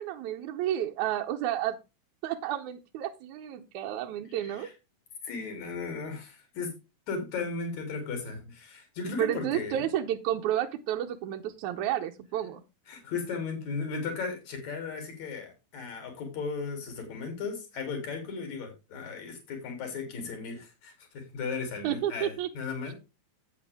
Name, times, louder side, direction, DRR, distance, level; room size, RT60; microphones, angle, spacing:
voice 1, 0.0-1.8 2.2-4.7 9.2-12.6 21.8-22.5, right 11 dB, 75° right, 4 dB, 1.9 m, -31 dB
voice 2, 4.3-4.7 5.2-6.7 7.1-9.9 12.9-22.9, left 4 dB, 55° left, 4 dB, 4.1 m, -36 dB
8.8 x 8.5 x 3.5 m, 0.27 s
omnidirectional pair, 4.0 m